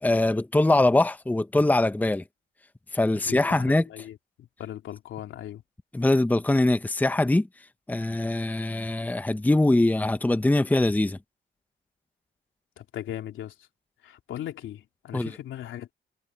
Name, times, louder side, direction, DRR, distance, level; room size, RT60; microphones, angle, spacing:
voice 1, 0.0-2.2 2.9-3.8 5.9-7.5 7.9-11.2 15.1-15.3, left 2 dB, 10° left, 0.9 m, -22 dB
voice 2, 3.2-5.6 12.8-13.7 14.0-15.9, left 11 dB, 75° left, 3.1 m, -38 dB
cardioid pair, 90°, 20 cm